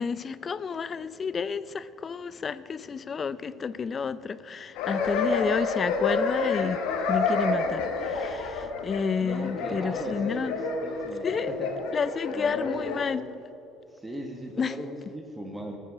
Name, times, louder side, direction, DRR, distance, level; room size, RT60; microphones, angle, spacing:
voice 1, 0.0-6.8 7.1-10.6 11.2-11.5 11.9-13.2 14.6-14.8, left 6 dB, 35° left, 0.5 m, -30 dB
sound 1, 4.8-13.0, left 4 dB, 70° left, 1.5 m, -29 dB
voice 2, 9.2-10.6 10.8-11.7 12.3-13.0 13.9-15.8, right 1 dB, 15° right, 1.5 m, -38 dB
15.0 x 9.1 x 4.9 m
hypercardioid pair, 70°, 0 cm